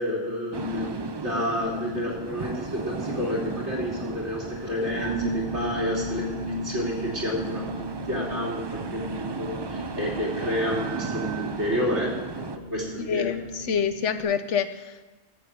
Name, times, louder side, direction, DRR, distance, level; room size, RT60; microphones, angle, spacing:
voice 1, 0.0-13.3, left 1 dB, 70° right, -2 dB, 3.1 m, -30 dB
sound 1, 0.5-12.6, right 4 dB, 35° right, 0.4 m, -35 dB
sound 2, 5.0-14.2, right 2 dB, 35° left, 1.8 m, -36 dB
voice 2, 13.0-15.1, left 7 dB, 85° left, 11 dB, 1.2 m, -28 dB
14.5 x 7.6 x 8.0 m, 1.1 s
omnidirectional pair, 1.2 m